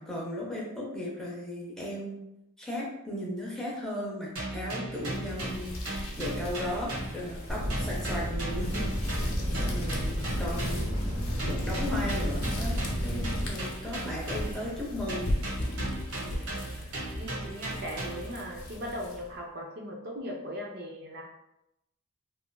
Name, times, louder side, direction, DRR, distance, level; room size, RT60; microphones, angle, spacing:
voice 1, 0.0-2.2 2.6-8.9 9.5-10.9 11.4-15.3, left 1 dB, ahead, -5 dB, 0.5 m, -36 dB
sound 1, 4.3-7.4 7.7-11.0 11.4-14.7 15.1-18.4, right 2 dB, 85° right, 1.3 m, -37 dB
sound 2, 4.9-19.4, left 1 dB, 70° left, 0.6 m, -39 dB
sound 3, 7.5-13.5, equal, 25° right, 1.0 m, -31 dB
voice 2, 9.5-9.9 13.5-13.6 16.2-16.8 17.2-21.3, equal, 45° right, -1 dB, 0.4 m, -39 dB
2.9 x 2.4 x 2.2 m, 0.86 s
head